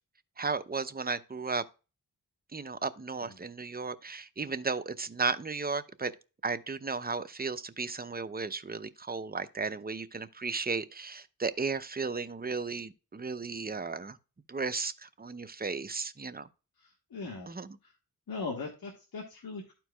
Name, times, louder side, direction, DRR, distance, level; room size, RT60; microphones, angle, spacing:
voice 1, 0.4-1.6 2.5-6.1 6.4-14.2 14.5-16.5 17.5-17.8, right 4 dB, 25° right, 0.7 m, -34 dB
voice 2, 17.1-17.5 18.3-19.7, left 4 dB, 70° left, 1.5 m, -38 dB
12.5 x 4.6 x 2.3 m
cardioid pair, 55°, 37 cm